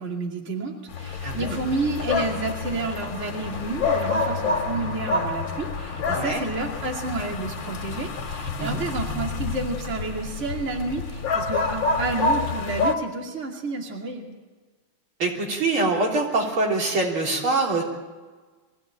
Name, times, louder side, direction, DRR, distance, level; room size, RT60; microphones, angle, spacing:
voice 1, 0.0-14.3, right 3 dB, 35° right, 0 dB, 2.8 m, -30 dB
sound 1, 0.9-12.9, left 4 dB, 65° left, 2.4 m, -28 dB
voice 2, 1.2-1.6 6.1-6.4 8.6-8.8 15.2-17.8, right 3 dB, 75° right, -1 dB, 4.4 m, -24 dB
23.0 x 16.5 x 9.0 m, 1.4 s
omnidirectional pair, 2.3 m